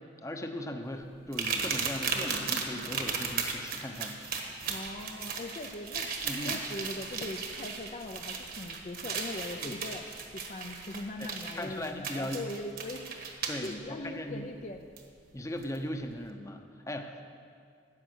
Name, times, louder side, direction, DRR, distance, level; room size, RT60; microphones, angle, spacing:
voice 1, 0.2-4.2 6.2-6.6 9.6-9.8 11.2-11.3 11.5-12.4 13.5-14.4 15.3-17.2, left 1 dB, 15° left, 5 dB, 0.8 m, -38 dB
sound 1, 1.3-13.7 15.0-15.1 15.6-15.8, right 5 dB, 55° right, 1.3 m, -36 dB
voice 2, 4.7-6.1 6.4-10.0 10.3-13.2 13.6-14.8, left 2 dB, 40° left, 4 dB, 0.5 m, -40 dB
13.5 x 8.8 x 6.3 m, 2.4 s
head